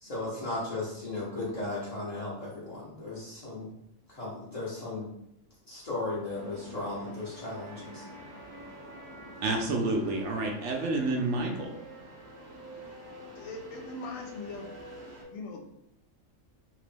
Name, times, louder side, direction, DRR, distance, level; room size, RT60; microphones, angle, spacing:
voice 1, 0.0-3.7 4.1-5.1 5.7-8.0, left 2 dB, 35° left, -8 dB, 0.8 m, -36 dB
sound 1, 6.3-15.2, equal, 40° right, 0.8 m, -47 dB
voice 2, 9.4-11.7, right 2 dB, 65° right, 1 dB, 0.9 m, -29 dB
voice 3, 13.4-14.7 15.3-15.8, left 2 dB, 75° left, 2 dB, 1.1 m, -40 dB
3.0 x 2.9 x 3.2 m, 0.79 s
omnidirectional pair, 1.4 m